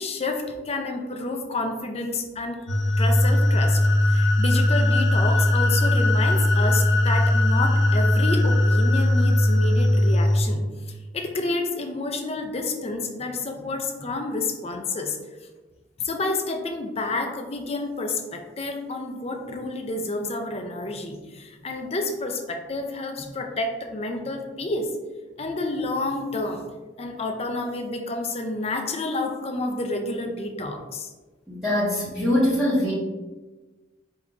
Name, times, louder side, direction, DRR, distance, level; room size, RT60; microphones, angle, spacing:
voice 1, 0.0-2.6 3.0-15.2 16.0-24.9 25.4-26.6 27.0-31.1, left 2 dB, 35° left, 4 dB, 0.6 m, -29 dB
sound 1, 2.7-10.4, left 1 dB, 85° left, 0.8 m, -19 dB
voice 2, 31.5-32.9, left 1 dB, ahead, -12 dB, 1.4 m, -22 dB
4.7 x 2.7 x 3.6 m, 1.2 s
head